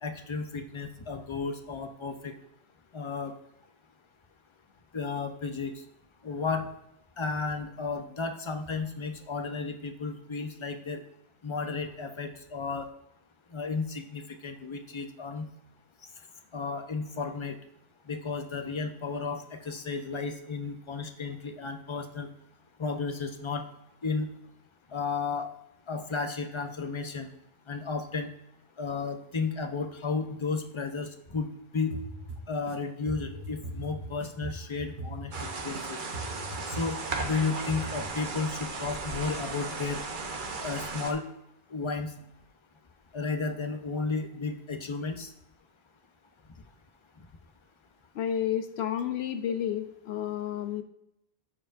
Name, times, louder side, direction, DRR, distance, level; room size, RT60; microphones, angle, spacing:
voice 1, 0.0-2.3 2.9-3.3 4.9-5.7 6.2-6.7 7.2-11.0 11.4-12.9 13.5-15.5 16.5-17.6 18.1-22.3 22.8-23.6 24.0-24.3 24.9-25.5 25.9-27.3 27.7-28.3 28.8-31.5 31.7-31.9 32.5-36.0 36.7-37.0 37.2-40.0 40.6-41.2 41.7-42.1 43.1-45.3 49.4-49.5, left 4 dB, 30° left, 6 dB, 0.7 m, -33 dB
sound 1, 31.9-32.8 33.1-35.8 36.1-37.4 37.7-38.1, right 2 dB, 80° right, 1.3 m, -40 dB
sound 2, 35.3-41.1, right 3 dB, 50° right, 1.0 m, -36 dB
voice 2, 48.1-50.8, left 10 dB, 80° left, 9 dB, 0.9 m, -31 dB
13.0 x 4.7 x 2.5 m, 0.83 s
omnidirectional pair, 1.1 m